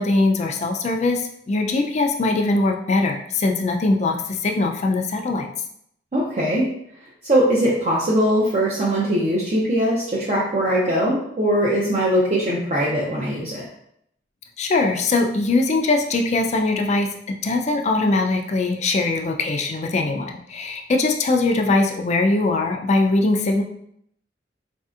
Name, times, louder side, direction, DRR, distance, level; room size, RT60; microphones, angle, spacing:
voice 1, 0.0-5.5 14.6-17.1 17.4-23.6, left 2 dB, 40° left, 3 dB, 0.4 m, -21 dB
voice 2, 6.1-6.6 7.2-13.6, equal, 40° right, -6 dB, 0.6 m, -21 dB
4.1 x 2.6 x 2.4 m, 0.71 s
head